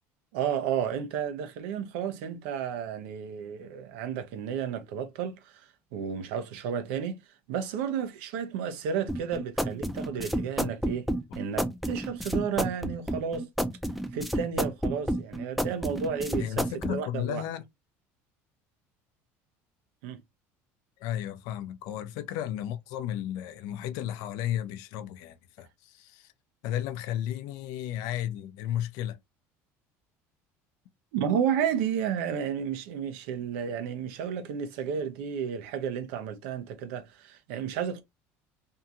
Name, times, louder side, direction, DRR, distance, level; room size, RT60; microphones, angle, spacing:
voice 1, 0.3-7.2 7.5-11.1 11.3-13.5 14.1-17.4 20.0-20.2 31.1-38.0, right 8 dB, 85° right, 0.7 m, -32 dB
sound 1, 9.1-17.0, equal, ahead, 0.5 m, -30 dB
voice 2, 16.4-17.6 21.0-26.3 26.6-29.2, left 11 dB, 75° left, 0.5 m, -34 dB
2.7 x 2.4 x 2.7 m
supercardioid pair, 110°, 7 cm